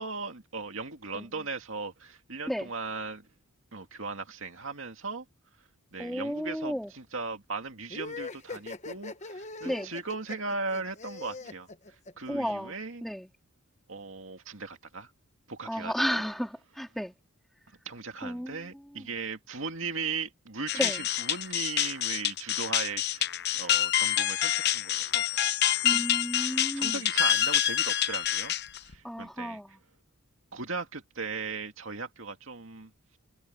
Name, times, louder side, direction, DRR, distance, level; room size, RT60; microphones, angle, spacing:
voice 1, 0.0-3.2 3.7-5.2 5.9-11.7 12.2-13.0 13.9-15.1 15.5-16.2 17.9-26.0 26.7-28.5 28.8-29.6 30.5-32.9, right 4 dB, 60° right, 2.5 m, -38 dB
voice 2, 6.0-6.9 9.6-9.9 12.3-12.7 13.0-13.3 15.6-17.1 18.2-18.6 19.0-19.1 20.7-21.0 25.8-27.0 29.0-29.7, equal, ahead, 3.2 m, -33 dB
sound 1, 7.9-12.5, left 3 dB, 30° left, 1.1 m, -41 dB
sound 2, 20.7-28.9, left 11 dB, 50° left, 0.8 m, -27 dB
head